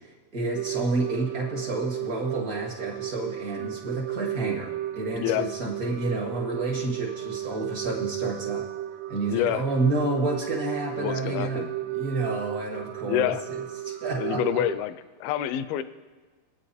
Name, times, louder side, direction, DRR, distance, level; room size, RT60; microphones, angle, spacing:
voice 1, 0.3-8.6 9.1-14.6, right 2 dB, 55° right, -2 dB, 0.9 m, -30 dB
sound 1, 0.6-14.8, right 14 dB, 85° right, 2.7 m, -34 dB
voice 2, 9.3-9.6 11.0-11.7 13.1-13.4 14.2-15.0 15.2-15.8, left 12 dB, 80° left, 13 dB, 2.3 m, -27 dB
24.5 x 8.8 x 4.2 m, 1.4 s
omnidirectional pair, 4.6 m